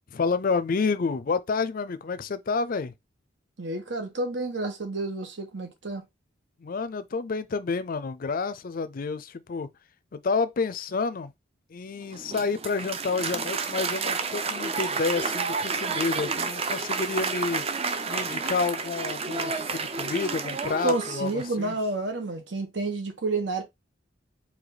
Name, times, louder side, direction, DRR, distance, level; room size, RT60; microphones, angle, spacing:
voice 1, 0.1-2.9 6.6-9.7 10.1-11.3 11.7-17.6 18.1-21.7, left 4 dB, 50° left, 0.5 m, -29 dB
voice 2, 3.6-6.0 20.8-23.6, right 2 dB, 75° right, 1.4 m, -30 dB
Applause, 12.1-21.7, right 4 dB, 35° right, 0.6 m, -30 dB
4.9 x 2.7 x 4.0 m
head